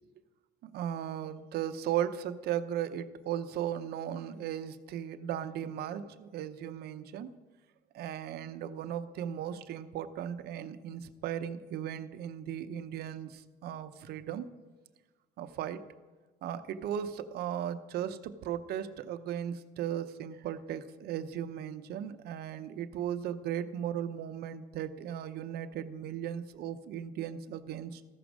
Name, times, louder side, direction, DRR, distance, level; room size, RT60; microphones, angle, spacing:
voice 1, 0.6-7.3 7.9-14.5 15.4-15.9 16.4-28.0, right 10 dB, 70° right, 11 dB, 0.6 m, -36 dB
14.0 x 6.1 x 6.1 m, 1.3 s
cardioid pair, 110°, 17 cm